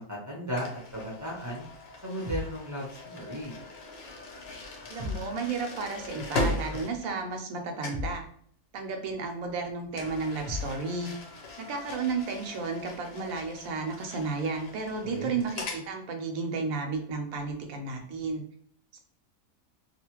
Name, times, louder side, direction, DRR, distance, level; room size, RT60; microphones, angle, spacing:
voice 1, 0.0-1.7 2.0-3.5 15.0-15.4, equal, 15° right, -6 dB, 0.6 m, -35 dB
sound 1, 0.6-7.5 7.8-8.1 9.9-15.9, left 2 dB, 60° left, 0.8 m, -39 dB
sound 2, 2.3-2.6 5.0-5.4 7.9-8.3 10.5-10.8, left 3 dB, 60° right, 0.4 m, -35 dB
voice 2, 4.9-8.2 8.7-11.1 11.6-18.4 18.9-19.0, right 4 dB, 80° right, 4 dB, 1.1 m, -33 dB
2.7 x 2.4 x 2.9 m, 0.63 s
omnidirectional pair, 1.5 m